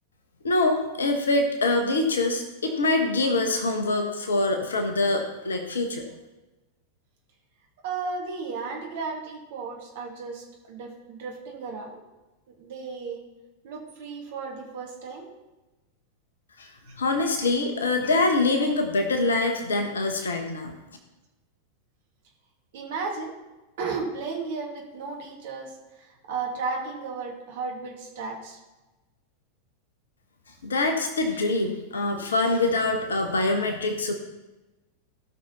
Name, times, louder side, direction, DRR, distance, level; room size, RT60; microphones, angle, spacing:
voice 1, 0.4-6.1 16.6-16.7 17.0-20.7 30.6-34.1, left 2 dB, 70° left, 5 dB, 1.3 m, -24 dB
voice 2, 7.8-12.0 12.5-13.2 13.6-15.3 16.9-17.0 22.7-23.3 23.8-28.6, right 4 dB, 55° right, 0 dB, 2.5 m, -34 dB
16.5 x 6.0 x 4.2 m, 1.1 s
figure-of-eight pair, 90°, 0 cm